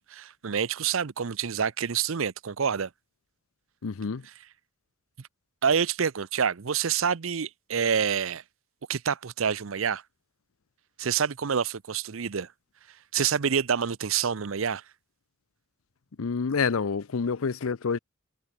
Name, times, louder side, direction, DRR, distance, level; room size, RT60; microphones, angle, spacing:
voice 1, 0.1-2.9 4.2-4.3 5.6-8.4 8.9-10.0 11.0-12.5 13.1-14.8, right 7 dB, 70° right, 0.6 m, -27 dB
voice 2, 3.8-4.2 16.2-18.0, left 5 dB, 80° left, 0.6 m, -28 dB
head